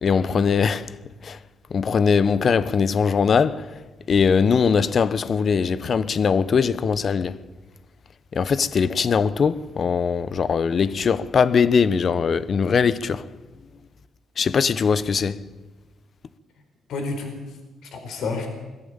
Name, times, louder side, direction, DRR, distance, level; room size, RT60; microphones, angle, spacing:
voice 1, 0.0-1.0 1.2-1.4 1.7-3.8 4.1-7.4 8.3-13.3 14.4-15.4, left 6 dB, 50° left, 1.0 m, -21 dB
voice 2, 16.9-18.5, left 3 dB, 75° left, 4.4 m, -31 dB
21.5 x 14.5 x 9.0 m
cardioid pair, 90°, 0 cm